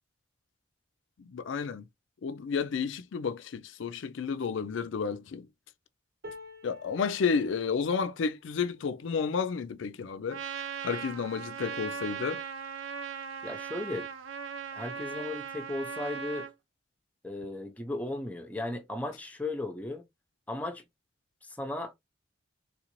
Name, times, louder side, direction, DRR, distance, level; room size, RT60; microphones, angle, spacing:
voice 1, 1.2-1.9 2.2-5.5 6.6-10.4 10.8-12.4, left 5 dB, 70° left, 0.4 m, -31 dB
sound 1, 6.2-12.4 13.0-13.2 13.5-14.2 15.2-15.3, left 1 dB, 50° right, 0.9 m, -53 dB
Trumpet, 10.3-16.5, right 6 dB, 85° right, 0.6 m, -38 dB
voice 2, 13.4-14.1 14.7-16.5 17.2-20.0 20.5-20.8 21.4-21.9, left 2 dB, 5° left, 0.6 m, -36 dB
3.6 x 2.5 x 3.0 m
head